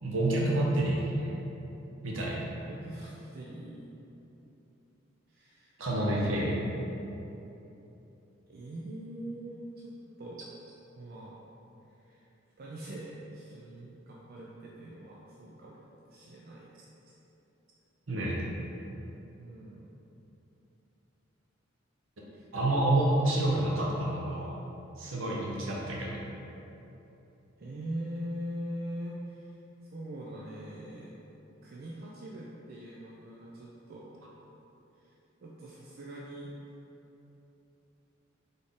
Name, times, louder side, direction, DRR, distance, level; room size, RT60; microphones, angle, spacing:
voice 1, 0.0-1.3 2.0-2.5 5.8-6.6 18.1-18.4 22.5-24.5 25.0-26.2, right 1 dB, 75° right, -4 dB, 0.9 m, -28 dB
voice 2, 2.7-4.0 5.3-5.8 8.5-10.4 11.0-11.4 12.0-12.3 12.6-17.1 19.4-19.9 22.3-22.4 27.6-29.6 29.9-31.1 31.6-34.2 35.0-36.5, right 1 dB, 50° right, -5 dB, 0.4 m, -42 dB
4.1 x 3.5 x 3.6 m, 3.0 s
head